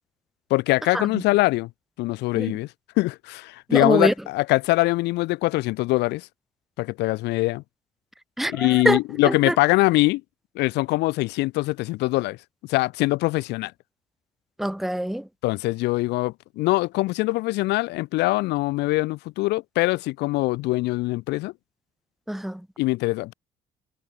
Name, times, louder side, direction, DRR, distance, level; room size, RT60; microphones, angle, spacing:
voice 1, 0.5-1.7 2.0-2.7 3.0-6.3 6.8-7.6 8.5-10.2 10.5-12.4 12.7-13.7 15.4-21.5 22.8-23.3, left 20 dB, 85° left, 1.3 m, -23 dB
voice 2, 3.7-4.1 8.4-9.0 9.2-9.5 14.6-15.3 22.3-22.6, right 1 dB, ahead, 0.7 m, -24 dB
cardioid pair, 110°, 17 cm